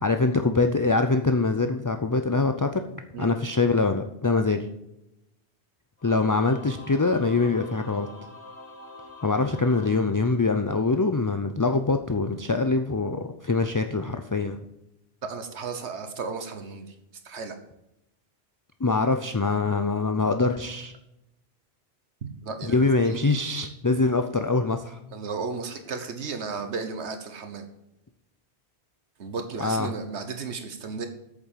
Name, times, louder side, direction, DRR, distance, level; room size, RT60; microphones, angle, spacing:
voice 1, 0.0-2.8 3.2-4.7 6.0-8.1 9.2-14.6 18.8-20.9 22.6-25.0 29.6-29.9, left 3 dB, 25° left, 7 dB, 0.5 m, -24 dB
Singing / Musical instrument, 6.0-10.8, left 2 dB, 80° left, 2.5 m, -45 dB
voice 2, 15.2-16.9 17.2-17.6 22.4-23.2 25.1-27.7 29.2-31.1, right 4 dB, 85° right, 7 dB, 1.4 m, -34 dB
8.7 x 7.2 x 7.3 m, 0.89 s
omnidirectional pair, 1.1 m